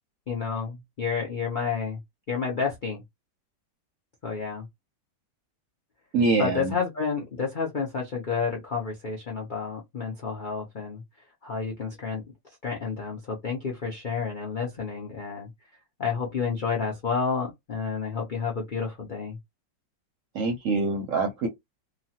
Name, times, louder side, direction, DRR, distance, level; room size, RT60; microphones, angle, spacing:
voice 1, 0.3-2.0 2.3-3.0 4.2-4.7 6.4-11.0 11.4-12.2 12.6-15.5 16.0-19.4, left 5 dB, 70° left, 0.4 m, -30 dB
voice 2, 6.1-6.7 20.3-21.5, right 3 dB, 65° right, 0.8 m, -25 dB
3.0 x 2.3 x 2.8 m
omnidirectional pair, 2.0 m